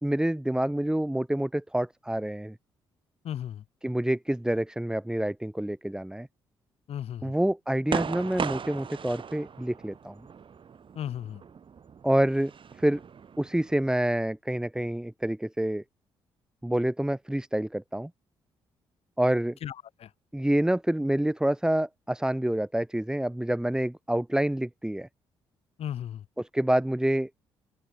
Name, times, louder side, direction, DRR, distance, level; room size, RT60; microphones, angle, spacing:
voice 1, 0.0-2.5 3.8-6.3 7.2-10.2 12.0-12.5 12.8-13.0 13.4-15.8 16.6-18.1 19.2-19.6 20.3-25.1 26.4-27.3, right 1 dB, 5° right, 1.0 m, -27 dB
voice 2, 3.2-3.6 6.9-7.3 11.0-11.4 19.6-19.7 20.0-20.1 25.8-26.2, left 10 dB, 50° left, 0.6 m, -35 dB
sound 1, 7.9-13.9, right 7 dB, 40° right, 1.0 m, -38 dB
open air
figure-of-eight pair, 40°, 13 cm